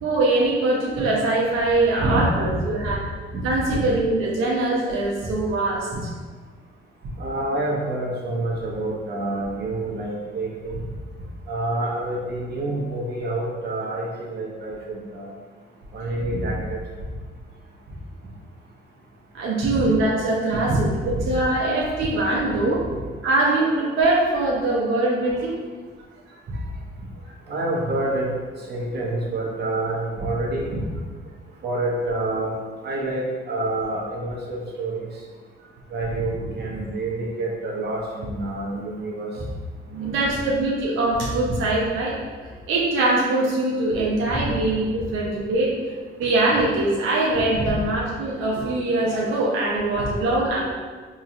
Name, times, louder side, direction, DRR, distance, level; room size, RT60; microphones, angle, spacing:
voice 1, 0.0-3.0 3.4-5.9 19.3-20.9 21.3-22.8 23.2-25.6 27.3-27.4 40.0-42.2 42.7-45.8 46.2-50.7, right 2 dB, 90° right, -4 dB, 0.7 m, -22 dB
voice 2, 2.0-2.5 3.3-3.4 3.7-3.8 5.9-6.0 7.2-10.8 11.5-15.3 15.9-16.8 19.7-19.8 20.7-20.8 21.1-21.3 27.5-28.3 28.7-30.7 31.6-32.5 32.8-35.1 35.9-39.3 39.9-40.2 44.3-44.4 47.5-47.7, right 2 dB, 55° right, -2 dB, 0.8 m, -27 dB
3.8 x 2.9 x 2.6 m, 1.5 s
cardioid pair, 90°, 20 cm